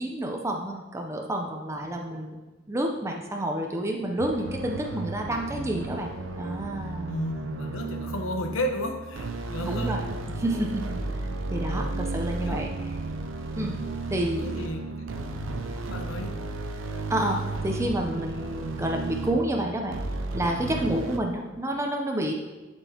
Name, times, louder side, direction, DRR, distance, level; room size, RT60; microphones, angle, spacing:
voice 1, 0.0-2.4 2.7-7.1 9.6-10.0 10.4-11.2 11.5-12.7 13.5-13.7 14.1-14.5 17.1-20.0 20.3-22.3, right 1 dB, 15° right, 1 dB, 0.5 m, -29 dB
sound 1, 4.2-21.2, right 2 dB, 70° right, 0.6 m, -33 dB
voice 2, 7.1-10.0 11.6-12.0 12.3-12.8 13.6-13.8 14.4-15.0 15.4-16.4 20.9-21.0, equal, 90° left, 4 dB, 0.9 m, -34 dB
11.0 x 4.5 x 2.8 m, 1.2 s
head